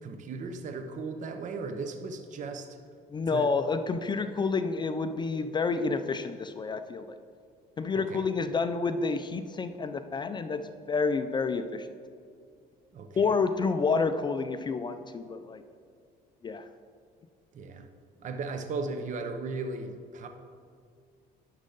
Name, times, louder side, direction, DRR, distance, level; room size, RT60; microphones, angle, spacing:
voice 1, 0.0-2.7 3.3-3.5 7.9-8.2 12.9-13.3 17.5-17.9 18.2-20.3, right 3 dB, 50° right, 6 dB, 0.7 m, -36 dB
voice 2, 3.1-7.1 7.8-11.9 13.2-15.6 16.4-16.7, left 4 dB, 25° left, 9 dB, 0.4 m, -29 dB
10.0 x 6.4 x 3.9 m, 2.3 s
cardioid pair, 110°, 17 cm